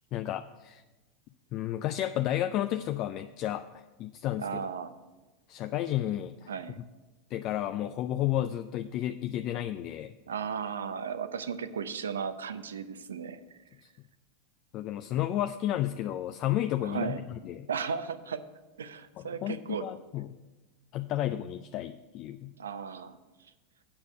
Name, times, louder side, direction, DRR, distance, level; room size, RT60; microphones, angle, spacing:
voice 1, 0.1-0.8 1.5-4.6 5.5-6.5 7.3-10.1 14.7-17.7 19.2-20.4 20.9-22.5, left 12 dB, 50° left, 9 dB, 0.3 m, -32 dB
voice 2, 4.4-4.9 6.5-6.8 10.3-13.4 16.8-17.2 17.7-18.4 18.8-19.8 22.6-23.2, right 6 dB, 85° right, 12 dB, 0.5 m, -35 dB
8.6 x 5.0 x 7.0 m, 1.1 s
hypercardioid pair, 100°, 0 cm